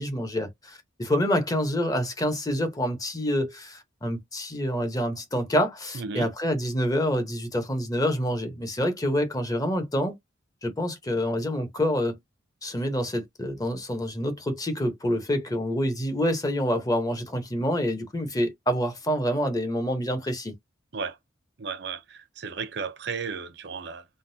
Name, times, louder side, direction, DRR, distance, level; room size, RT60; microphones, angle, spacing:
voice 1, 0.0-10.1 10.6-12.2 12.6-20.5, equal, 20° left, 0.9 m, -27 dB
voice 2, 5.9-6.3 20.9-21.2 21.6-24.1, right 5 dB, 60° right, 0.6 m, -34 dB
3.7 x 2.2 x 2.7 m
head